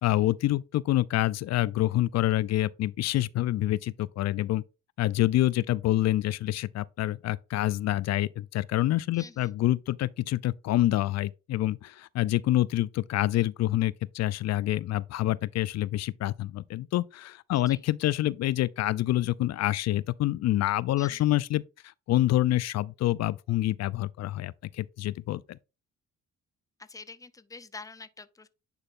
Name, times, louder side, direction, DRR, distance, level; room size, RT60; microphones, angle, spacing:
voice 1, 0.0-4.6 5.0-21.6 22.1-25.6, left 15 dB, 60° left, 0.4 m, -27 dB
voice 2, 9.1-9.5 17.5-17.8 21.0-21.3 26.8-28.5, left 4 dB, 10° left, 0.5 m, -46 dB
9.8 x 4.0 x 2.5 m
cardioid pair, 90°, 30 cm